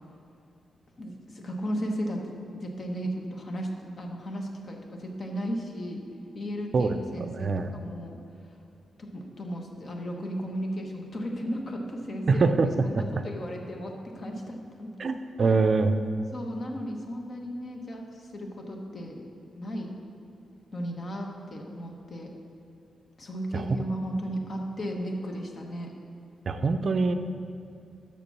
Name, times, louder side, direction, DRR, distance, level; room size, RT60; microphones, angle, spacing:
voice 1, 1.0-6.0 6.3-8.2 9.0-12.4 12.8-14.9 15.4-15.6 16.3-19.3 19.5-20.0 20.7-22.3 23.2-25.9, equal, 50° left, 1 dB, 1.1 m, -35 dB
voice 2, 7.4-7.7 12.3-12.7 12.9-13.0 15.0-16.0 23.5-23.6 26.5-27.1, right 4 dB, 55° right, 8 dB, 0.4 m, -23 dB
6.8 x 6.0 x 6.0 m, 2.4 s
cardioid pair, 80°, 0 cm